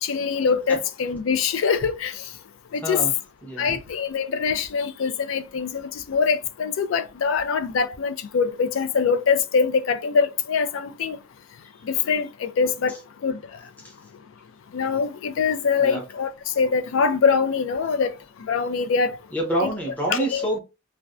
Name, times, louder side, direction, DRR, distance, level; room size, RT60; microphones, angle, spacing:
voice 1, 0.0-2.2 2.7-3.0 3.6-11.2 11.8-13.0 13.2-13.4 14.7-18.1 18.5-19.2 19.6-19.7 20.1-20.4, left 5 dB, 70° left, 0.3 m, -23 dB
voice 2, 2.8-3.1 3.4-3.8 13.8-13.9 15.8-16.0 19.3-20.6, right 1 dB, 10° left, 0.7 m, -27 dB
2.5 x 2.1 x 2.3 m
head